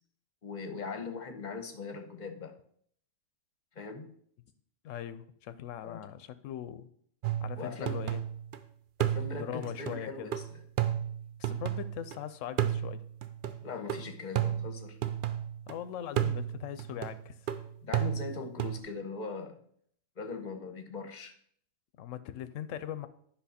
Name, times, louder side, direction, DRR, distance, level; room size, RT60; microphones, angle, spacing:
voice 1, 0.4-2.5 3.7-4.1 5.8-6.0 7.6-8.0 9.0-10.6 13.6-15.0 17.8-19.6 20.2-21.3, left 4 dB, 40° left, 6 dB, 1.1 m, -40 dB
voice 2, 4.8-6.9 7.4-8.2 9.3-10.3 11.4-13.0 15.7-17.3 22.0-23.1, left 10 dB, 80° left, 13 dB, 1.0 m, -40 dB
sound 1, 7.2-8.6 9.0-12.2 12.6-15.7 16.2-18.8, right 11 dB, 55° right, 0.6 m, -33 dB
10.5 x 5.7 x 4.2 m, 0.64 s
omnidirectional pair, 1.3 m